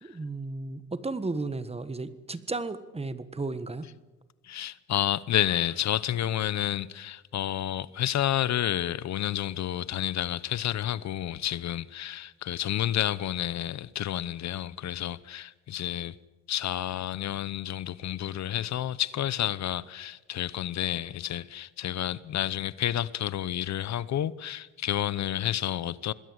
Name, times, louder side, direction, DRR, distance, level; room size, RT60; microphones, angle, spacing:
voice 1, 0.0-3.8, right 3 dB, 20° right, 1.5 m, -34 dB
voice 2, 4.4-16.2 16.5-26.1, left 12 dB, 65° left, 0.9 m, -30 dB
26.0 x 20.5 x 8.1 m
cardioid pair, 90°, 30 cm